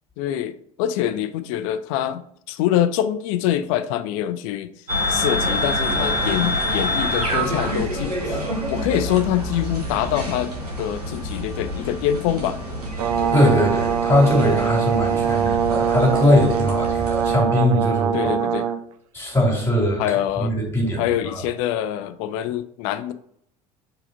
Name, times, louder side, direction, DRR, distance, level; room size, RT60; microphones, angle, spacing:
voice 1, 0.2-2.2 2.5-4.7 5.1-10.5 10.8-12.6 18.1-18.7 20.0-20.5 21.0-23.1, left 11 dB, 60° left, 12 dB, 0.5 m, -24 dB
sound 1, 4.9-17.3, equal, 90° right, 1.3 m, -27 dB
Brass instrument, 13.0-18.8, right 8 dB, 65° right, 0.5 m, -22 dB
voice 2, 13.3-18.1 19.1-21.4, left 1 dB, 10° left, -1 dB, 2.7 m, -20 dB
4.9 x 3.8 x 5.2 m, 0.67 s
figure-of-eight pair, 65°, 19 cm